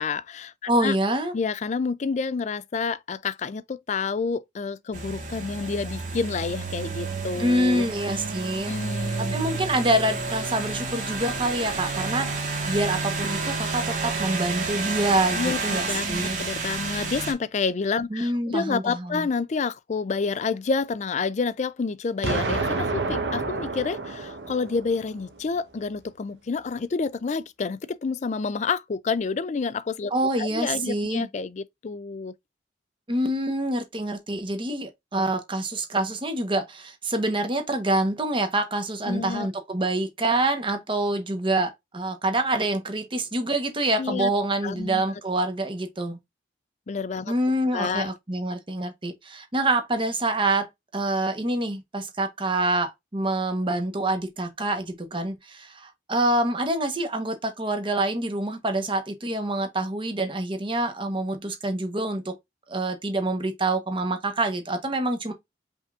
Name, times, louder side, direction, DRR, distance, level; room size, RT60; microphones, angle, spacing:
voice 1, 0.0-1.0 1.3-7.9 8.7-9.3 15.3-30.1 30.4-32.3 39.1-39.5 44.0-44.3 44.6-45.0 46.9-47.3 47.7-48.1, left 4 dB, 40° left, 0.4 m, -29 dB
voice 2, 0.7-1.3 7.4-8.7 9.2-16.4 18.1-19.3 30.1-31.3 33.1-46.2 47.3-62.4 62.7-65.3, right 1 dB, 30° right, 1.1 m, -26 dB
sound 1, 4.9-17.3, right 4 dB, 45° right, 1.7 m, -30 dB
Explosion, 22.2-25.2, right 3 dB, 70° right, 1.2 m, -29 dB
5.3 x 3.5 x 2.5 m
head